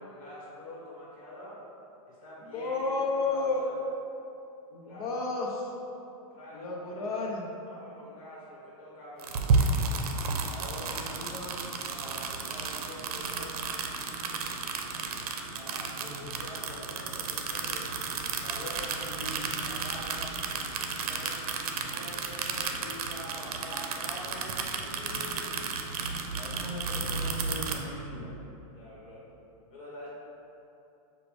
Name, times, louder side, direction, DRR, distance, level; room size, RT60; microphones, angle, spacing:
voice 1, 0.0-1.6 2.1-3.8 4.8-5.3 6.3-7.1 7.7-9.6 10.4-10.9 11.9-13.6 15.5-18.0 18.3-19.0 19.4-20.3 20.7-21.4 21.9-25.5 28.7-29.2 29.7-30.1, left 1 dB, 65° left, -7 dB, 1.4 m, -45 dB
voice 2, 2.5-3.6 4.7-5.6 6.5-7.5 10.8-11.6 16.0-16.2 19.1-19.5 21.7-22.0 26.4-28.3, left 3 dB, 80° left, -2 dB, 0.9 m, -34 dB
sound 1, 9.2-27.8, right 4 dB, 80° right, 0.5 m, -33 dB
6.1 x 2.5 x 3.3 m, 2.8 s
supercardioid pair, 150°, 19 cm